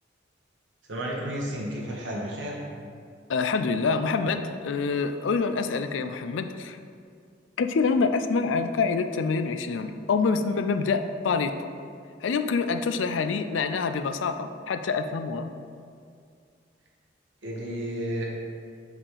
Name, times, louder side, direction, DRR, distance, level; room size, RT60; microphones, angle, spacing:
voice 1, 0.9-2.6 17.4-18.3, equal, 80° right, -2 dB, 1.3 m, -32 dB
voice 2, 3.3-6.8 7.6-11.7 12.2-15.5, left 4 dB, 80° left, 8 dB, 0.4 m, -26 dB
5.6 x 4.9 x 4.9 m, 2.3 s
head